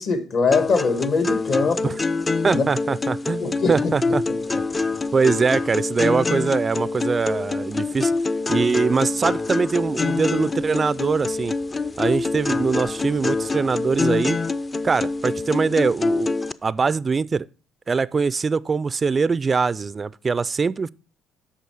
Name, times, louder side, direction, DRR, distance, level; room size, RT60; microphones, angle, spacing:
voice 1, 0.0-1.9 2.5-2.7 3.4-3.8 4.5-4.6, left 4 dB, 60° left, 1.7 m, -22 dB
sound 1, 0.5-16.5, left 3 dB, 30° left, 0.5 m, -25 dB
voice 2, 2.4-4.2 5.1-8.1 8.5-11.5 12.0-14.4 14.8-16.3 16.6-17.5 17.9-20.9, right 5 dB, 35° right, 0.3 m, -22 dB
8.3 x 6.0 x 4.7 m
hypercardioid pair, 55°, 0 cm